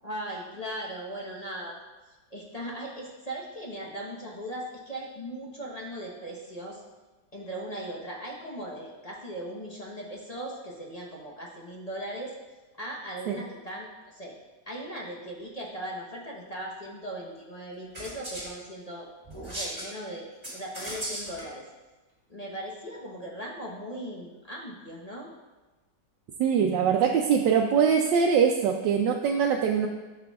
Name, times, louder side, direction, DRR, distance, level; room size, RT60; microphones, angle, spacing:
voice 1, 0.0-1.8 2.3-6.8 7.3-12.3 12.8-14.4 14.7-19.1 19.4-20.2 20.5-21.6 22.3-25.3, right 1 dB, 30° left, -3 dB, 0.8 m, -38 dB
sound 1, 17.9-18.5 19.2-19.9 20.4-21.4, right 1 dB, 15° right, 2.4 m, -36 dB
voice 2, 26.4-29.9, right 7 dB, 85° right, 1 dB, 1.2 m, -23 dB
12.0 x 5.8 x 2.3 m, 1.2 s
omnidirectional pair, 1.9 m